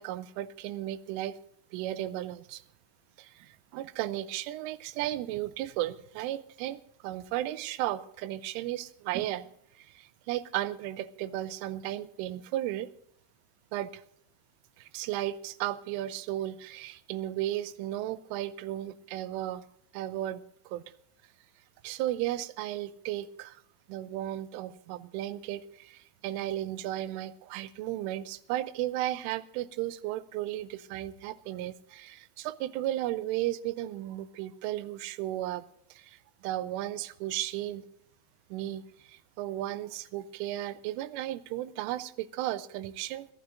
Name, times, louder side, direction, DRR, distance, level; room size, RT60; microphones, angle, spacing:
voice 1, 0.0-1.4 1.7-2.6 3.2-9.5 9.8-12.9 13.7-14.0 14.8-19.6 19.9-20.8 21.8-23.6 23.9-35.6 35.9-37.8 38.5-43.3, right 14 dB, 90° right, 15 dB, 3.2 m, -35 dB
29.5 x 10.5 x 2.6 m, 0.72 s
omnidirectional pair, 5.6 m